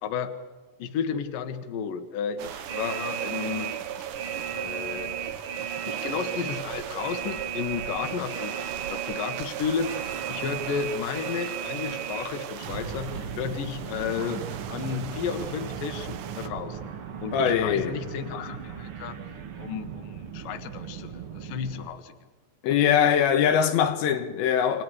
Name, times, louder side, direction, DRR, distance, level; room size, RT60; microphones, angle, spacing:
voice 1, 0.0-0.4 0.8-3.7 4.5-5.1 5.6-16.9 17.2-19.2 19.6-22.1, left 7 dB, 60° left, 2.7 m, -33 dB
sound 1, 2.4-16.5, right 9 dB, 70° right, 2.0 m, -40 dB
sound 2, 2.7-21.9, right 8 dB, 85° right, 1.2 m, -36 dB
voice 2, 17.3-18.0 22.6-24.8, left 8 dB, 85° left, 3.6 m, -22 dB
29.5 x 25.5 x 4.9 m
omnidirectional pair, 5.0 m